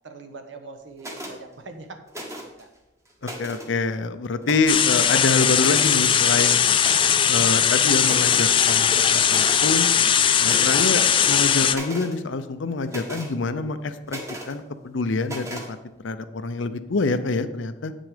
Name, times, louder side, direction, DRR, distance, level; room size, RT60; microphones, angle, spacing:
voice 1, 0.0-2.7, right 3 dB, 80° right, 6 dB, 1.1 m, -42 dB
sound 1, 1.0-1.4 2.1-2.6 3.1-3.7 4.4-4.9 5.6-6.0 6.8-7.3 7.7-7.8 8.0-8.5 9.3-9.6 10.4-10.9 11.3-12.2 12.9-13.3 14.1-14.5 15.2-15.7, equal, 15° right, 1.2 m, -36 dB
voice 2, 3.2-6.7 7.3-9.9 10.4-14.2 14.5-15.8 16.0-17.9, left 3 dB, 85° left, 11 dB, 0.6 m, -26 dB
sound 2, 4.7-11.7, left 8 dB, 25° left, 0.4 m, -19 dB
8.4 x 6.3 x 5.0 m, 0.98 s
head